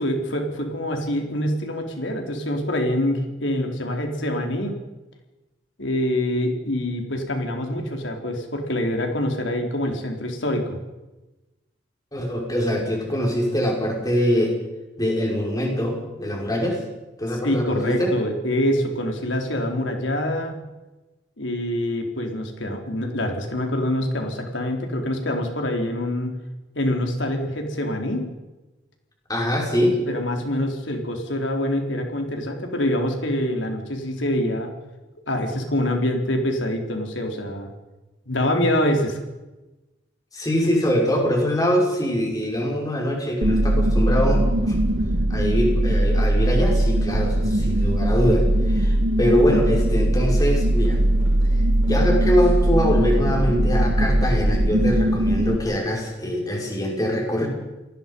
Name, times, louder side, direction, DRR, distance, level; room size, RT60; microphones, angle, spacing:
voice 1, 0.0-4.7 5.8-10.8 17.4-20.6 21.4-26.3 26.7-28.3 30.1-34.7 35.3-37.7 38.3-39.2, left 1 dB, 85° left, 3 dB, 4.3 m, -25 dB
voice 2, 12.1-14.6 15.0-16.8 17.2-18.1 29.3-30.0 40.3-44.8 45.3-51.0 51.9-57.5, equal, 20° left, 0 dB, 5.8 m, -23 dB
sound 1, 43.4-55.6, right 1 dB, 75° right, 1.8 m, -20 dB
sound 2, 46.9-47.9 48.2-48.6 48.9-49.1 49.5-54.5, equal, 15° right, 7.8 m, -44 dB
29.0 x 19.5 x 5.6 m, 1.1 s
head